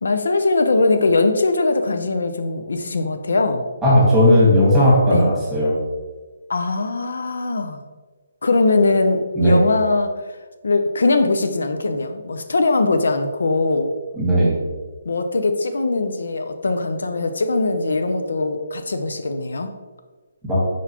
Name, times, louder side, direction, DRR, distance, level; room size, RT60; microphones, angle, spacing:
voice 1, 0.0-3.6 5.1-5.3 6.5-7.8 8.4-10.2 10.6-13.9 15.1-19.7, left 3 dB, 80° left, 7 dB, 0.4 m, -21 dB
voice 2, 3.8-5.7 9.3-9.6 14.2-14.6 20.5-20.6, equal, 5° right, -8 dB, 1.4 m, -15 dB
4.5 x 4.0 x 2.8 m, 1.3 s
hypercardioid pair, 165°, 0 cm